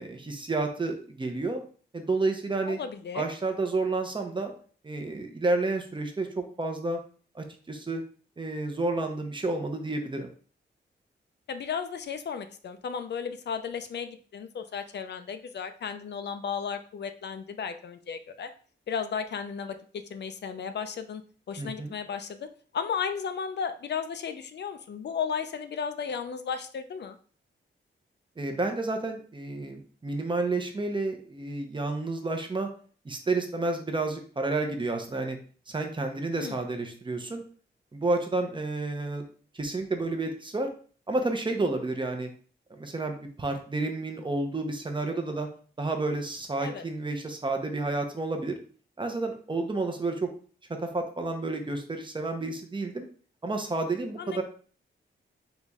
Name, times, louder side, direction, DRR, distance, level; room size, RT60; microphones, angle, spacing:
voice 1, 0.0-1.6 1.9-2.8 3.1-4.5 4.8-7.0 7.3-8.0 8.4-10.3 21.6-21.9 28.4-32.7 33.0-35.4 35.7-37.4 37.9-39.2 39.5-40.7 41.1-42.3 42.7-45.5 45.8-48.6 49.0-50.3 50.7-53.1 53.4-54.4, right 2 dB, 25° right, 4 dB, 0.7 m, -30 dB
voice 2, 2.7-3.3 11.5-18.5 18.9-19.8 20.1-21.2 21.5-22.5 22.7-27.2 36.4-36.6 46.6-46.8 54.2-54.4, left 6 dB, 60° left, 9 dB, 0.4 m, -34 dB
4.0 x 3.0 x 3.5 m, 0.43 s
wide cardioid pair, 130°, 20 cm